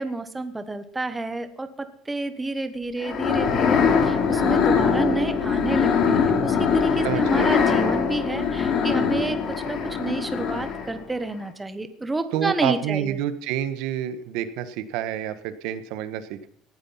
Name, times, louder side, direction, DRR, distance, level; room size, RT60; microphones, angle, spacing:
voice 1, 0.0-13.2, right 2 dB, 10° right, 10 dB, 1.0 m, -29 dB
sound 1, 3.0-11.0, left 6 dB, 40° left, 2.8 m, -22 dB
voice 2, 7.0-7.5 7.9-8.0 12.3-16.5, right 10 dB, 70° right, 12 dB, 1.4 m, -28 dB
18.0 x 10.0 x 5.7 m, 0.64 s
cardioid pair, 155°, 0 cm